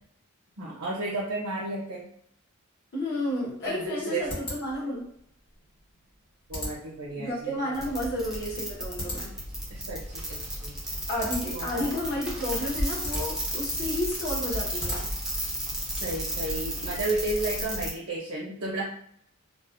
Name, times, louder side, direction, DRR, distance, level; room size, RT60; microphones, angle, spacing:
voice 1, 0.6-2.1 3.6-4.4 6.5-7.7 9.7-10.8 11.5-11.8 15.9-18.9, right 2 dB, 70° right, -5 dB, 0.6 m, -33 dB
voice 2, 2.9-5.1 7.2-9.3 11.1-15.0, left 1 dB, 50° left, -6 dB, 0.7 m, -31 dB
sound 1, 3.2-15.4, left 1 dB, 70° left, 1.2 m, -41 dB
sound 2, 7.7-17.9, equal, ahead, 0.4 m, -33 dB
2.4 x 2.1 x 2.5 m, 0.70 s
head